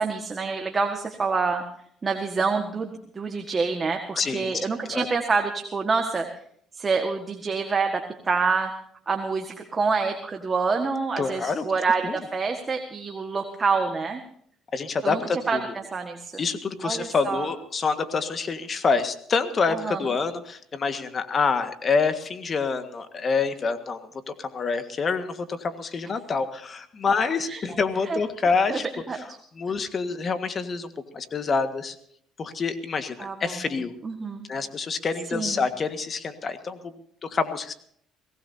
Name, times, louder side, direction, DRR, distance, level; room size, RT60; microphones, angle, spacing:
voice 1, 0.0-1.6 2.0-6.3 6.7-8.7 9.1-14.2 15.0-15.6 15.9-16.4 16.8-17.5 19.7-20.0 27.5-27.8 28.1-28.2 28.7-28.8 29.1-29.2 33.2-33.7 34.0-34.5 35.3-35.7, right 4 dB, 30° right, 4 dB, 1.7 m, -27 dB
voice 2, 4.2-4.6 4.9-5.1 11.2-11.6 12.0-12.2 14.7-15.6 16.4-24.0 24.3-28.8 29.5-30.9 31.1-31.9 32.4-33.9 34.5-36.9 37.2-37.7, left 4 dB, 40° left, 9 dB, 1.7 m, -27 dB
22.5 x 17.5 x 2.8 m, 0.65 s
cardioid pair, 100°, 0 cm